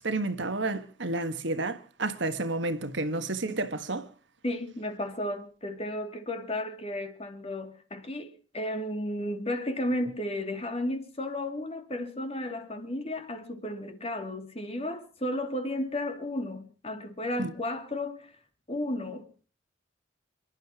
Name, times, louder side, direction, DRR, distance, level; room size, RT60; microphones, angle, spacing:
voice 1, 0.0-4.1 17.4-17.5, right 2 dB, 65° right, 1.6 m, -31 dB
voice 2, 4.4-18.4 18.7-19.5, left 1 dB, 30° left, 2.7 m, -33 dB
28.5 x 12.0 x 3.0 m
head